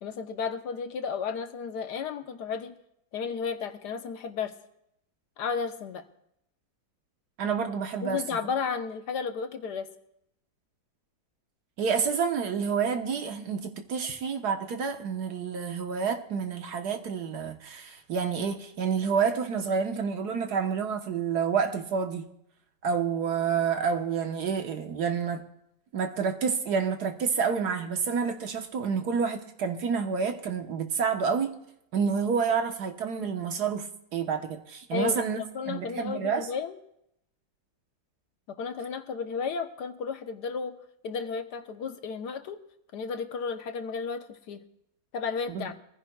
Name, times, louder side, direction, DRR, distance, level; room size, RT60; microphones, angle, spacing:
voice 1, 0.0-2.7 3.1-4.5 5.4-6.0 8.0-9.9 34.9-36.8 38.5-40.8 41.0-42.6 42.9-44.6 45.1-45.7, left 5 dB, 70° left, 1.4 m, -33 dB
voice 2, 7.4-8.2 11.8-22.2 22.8-25.5 25.9-31.5 31.9-35.4 35.7-36.5 45.5-45.7, right 6 dB, 65° right, 1.6 m, -29 dB
24.5 x 15.0 x 2.3 m
omnidirectional pair, 1.9 m